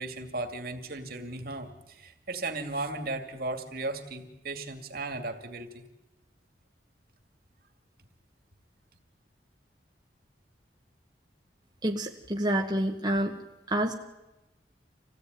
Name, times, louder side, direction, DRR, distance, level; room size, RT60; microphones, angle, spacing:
voice 1, 0.0-5.8, right 2 dB, 55° right, 6 dB, 2.5 m, -36 dB
voice 2, 11.8-13.3 13.7-13.9, right 1 dB, 25° right, 1 dB, 1.4 m, -28 dB
27.0 x 17.0 x 9.5 m, 0.99 s
head